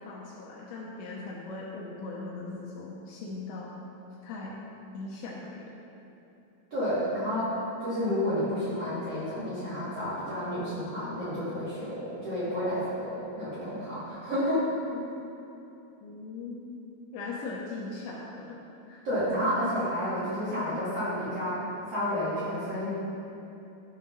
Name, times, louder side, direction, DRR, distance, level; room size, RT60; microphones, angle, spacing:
voice 1, 0.1-3.8 4.2-4.6 4.9-5.6 14.9-15.3 16.0-16.7 17.1-18.6 18.9-19.0, left 3 dB, 75° left, -4 dB, 2.9 m, -39 dB
voice 2, 6.7-14.6 19.0-22.9, equal, 40° right, -12 dB, 2.7 m, -30 dB
12.0 x 5.7 x 5.5 m, 2.9 s
omnidirectional pair, 5.7 m